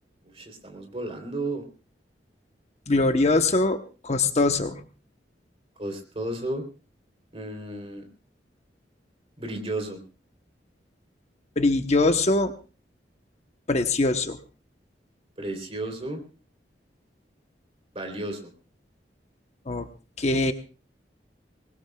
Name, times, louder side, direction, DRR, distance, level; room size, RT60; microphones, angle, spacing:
voice 1, 0.2-1.7 5.8-6.6 7.3-8.0 9.4-10.0 15.4-16.2 17.9-18.5, right 1 dB, 35° right, 4 dB, 3.5 m, -33 dB
voice 2, 2.9-4.8 11.6-12.5 13.7-14.4 19.7-19.8 20.2-20.5, left 2 dB, 40° left, 7 dB, 1.0 m, -22 dB
24.0 x 20.0 x 2.3 m, 0.34 s
head